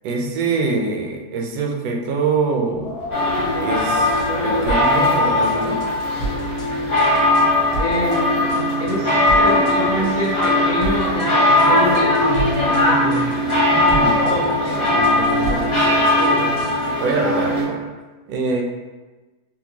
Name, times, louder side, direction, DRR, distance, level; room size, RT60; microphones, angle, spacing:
voice 1, 0.0-3.0 3.6-5.8 13.7-16.4 17.0-17.8 18.3-18.6, right 4 dB, 70° right, 0 dB, 1.0 m, -25 dB
Wind, 2.6-5.3 5.6-5.7 6.4-6.5 7.0-8.6 9.5-11.0 11.5-13.2 14.4-16.5, left 2 dB, 75° left, 0.5 m, -33 dB
sound 1, 3.1-17.6, left 1 dB, 30° left, 0.6 m, -19 dB
sound 2, 4.7-5.1 5.4-6.7 7.0-7.4 7.7-8.2 8.5-9.7 10.0-10.5 10.8-11.3 11.6-12.8 13.1-13.6 13.9-16.9, right 2 dB, 90° left, 1.5 m, -32 dB
voice 2, 7.8-13.4, left 1 dB, 60° left, -5 dB, 1.3 m, -25 dB
4.3 x 2.2 x 2.8 m, 1.2 s
omnidirectional pair, 1.8 m